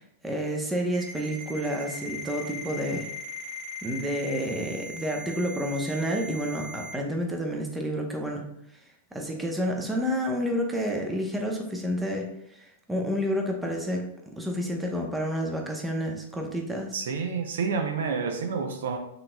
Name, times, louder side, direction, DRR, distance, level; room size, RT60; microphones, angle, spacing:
voice 1, 0.0-3.1 3.8-8.4 9.1-14.1 14.4-17.0, equal, 10° right, 1 dB, 0.9 m, -30 dB
Ringtone, 0.9-6.9, left 1 dB, 40° right, 1.6 m, -39 dB
voice 2, 16.9-19.0, right 5 dB, 70° right, 5 dB, 0.6 m, -29 dB
5.8 x 3.9 x 2.2 m, 0.79 s
hypercardioid pair, 105°, 0 cm